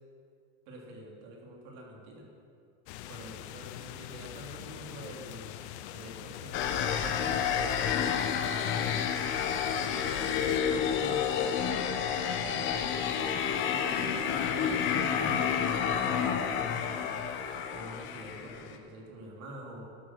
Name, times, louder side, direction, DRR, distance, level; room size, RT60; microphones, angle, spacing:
voice 1, 0.7-2.3 3.1-5.6 5.9-9.0 9.6-17.1 17.7-19.8, right 1 dB, 45° right, -1 dB, 3.2 m, -46 dB
sound 1, 2.9-10.6, left 12 dB, 60° left, 0.7 m, -43 dB
sound 2, 6.5-18.8, left 8 dB, 30° left, 0.9 m, -30 dB
12.5 x 12.0 x 6.1 m, 2.4 s
supercardioid pair, 160°, 38 cm